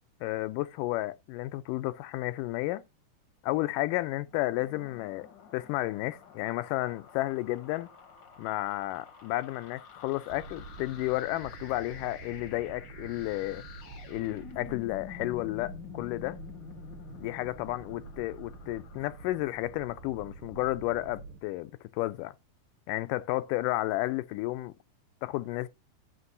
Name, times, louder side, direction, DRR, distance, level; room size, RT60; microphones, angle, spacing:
voice 1, 0.2-2.8 3.4-5.3 5.5-7.9 8.4-13.6 14.1-16.4 17.2-22.3 22.9-24.7 25.2-25.7, left 18 dB, 85° left, 2.2 m, -32 dB
sound 1, 4.2-20.6, left 8 dB, 60° left, 1.2 m, -50 dB
sound 2, 10.3-21.4, right 4 dB, 80° right, 2.2 m, -48 dB
14.0 x 6.0 x 2.6 m
omnidirectional pair, 3.7 m